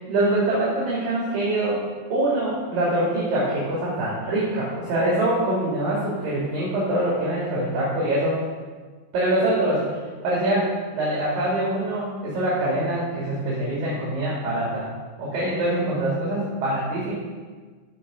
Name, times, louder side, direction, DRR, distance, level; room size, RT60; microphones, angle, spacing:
voice 1, 0.1-1.8 2.1-8.4 9.1-14.9 15.2-17.1, right 1 dB, 60° right, -6 dB, 4.4 m, -24 dB
15.5 x 6.0 x 6.9 m, 1.4 s
omnidirectional pair, 4.5 m